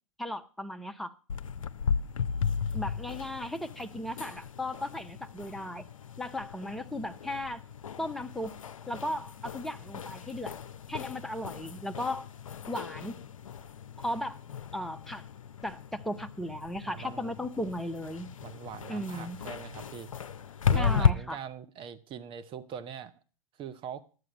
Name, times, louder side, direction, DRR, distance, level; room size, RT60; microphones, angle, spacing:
voice 1, 0.2-1.1 2.7-5.8 6.2-7.6 8.0-8.6 8.9-10.6 10.9-12.3 12.7-13.2 14.0-14.4 14.7-15.3 15.6-18.3 18.9-19.4 20.7-21.4, left 1 dB, ahead, 0.6 m, -36 dB
sound 1, 1.3-21.1, left 6 dB, 75° left, 0.5 m, -35 dB
voice 2, 16.9-17.4 18.4-20.1 20.7-23.1 23.6-24.0, right 8 dB, 30° right, 0.8 m, -42 dB
11.5 x 7.7 x 6.1 m
figure-of-eight pair, 100°, 17 cm